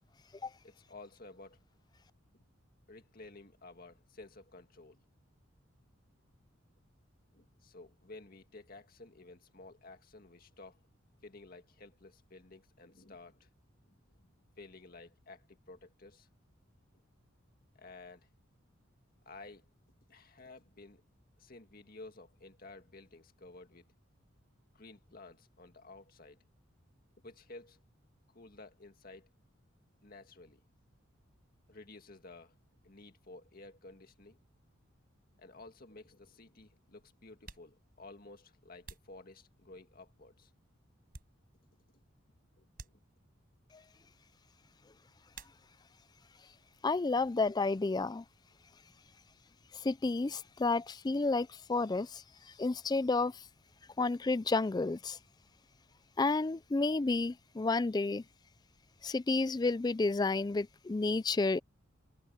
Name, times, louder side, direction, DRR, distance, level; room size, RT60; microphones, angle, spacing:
voice 1, 0.6-1.6 2.3-2.4 2.9-5.0 7.3-10.8 11.2-13.5 13.9-14.0 14.6-16.3 17.7-18.3 19.3-19.7 20.1-21.0 21.4-23.9 24.7-26.4 27.2-27.8 28.3-29.3 30.0-30.6 31.7-32.5 32.8-34.4 35.4-40.5 42.6-43.0, left 2 dB, 45° left, 2.0 m, -53 dB
sound 1, 37.4-39.9 40.5-41.8 42.1-42.3 42.7-43.5 45.3-46.1 46.4-47.0 47.3-49.5, right 4 dB, 45° right, 4.8 m, -56 dB
voice 2, 46.8-48.2 49.7-53.4 54.0-55.2 56.2-58.2 59.0-61.6, left 3 dB, 20° left, 0.4 m, -31 dB
head